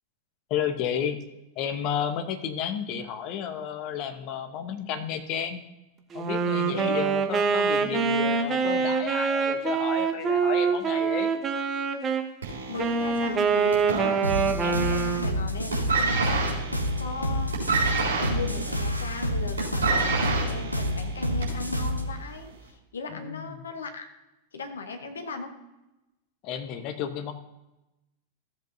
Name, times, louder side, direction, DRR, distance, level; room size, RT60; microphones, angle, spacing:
voice 1, 0.5-1.2 1.6-5.6 6.1-11.3 23.1-23.6 26.4-27.3, left 8 dB, 40° left, 7 dB, 1.1 m, -32 dB
Wind instrument woodwind instrument, 6.1-12.3 12.8-15.4, right 5 dB, 25° right, 1.0 m, -25 dB
voice 2, 6.7-7.0 12.7-24.1 24.5-25.6, left 4 dB, 70° left, 6 dB, 1.3 m, -37 dB
sound 1, 12.4-14.7 15.0-15.4 15.7-21.7 22.5-22.6, right 4 dB, 65° right, 4.0 m, -29 dB
sound 2, 14.2-22.1, equal, 90° left, 0.8 m, -28 dB
14.5 x 7.8 x 2.8 m, 0.97 s
figure-of-eight pair, 90°, 0 cm